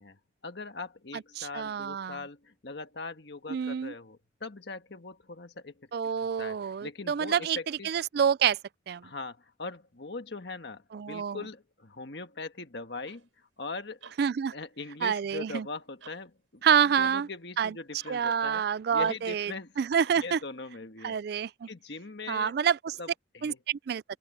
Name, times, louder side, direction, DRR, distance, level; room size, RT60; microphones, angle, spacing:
voice 1, 0.0-7.9 9.0-14.0 14.5-18.6 18.9-19.8 20.2-21.2 21.6-22.5 23.0-23.6, left 3 dB, 60° left, 1.5 m, -41 dB
voice 2, 1.4-2.2 3.5-3.9 5.9-8.6 8.9-9.0 10.9-11.4 14.2-14.5 15.0-15.7 16.6-17.3 17.6-17.7 18.1-19.5 19.8-20.4 21.0-21.7 22.3-23.0 23.4-24.0, right 7 dB, 55° right, 0.3 m, -27 dB
sound 1, 13.1-13.3 14.0-14.2 15.0-15.3 16.0-16.3 17.0-17.3 18.0-18.3 19.0-19.4 20.0-20.3, right 5 dB, 90° right, 6.2 m, -51 dB
open air
head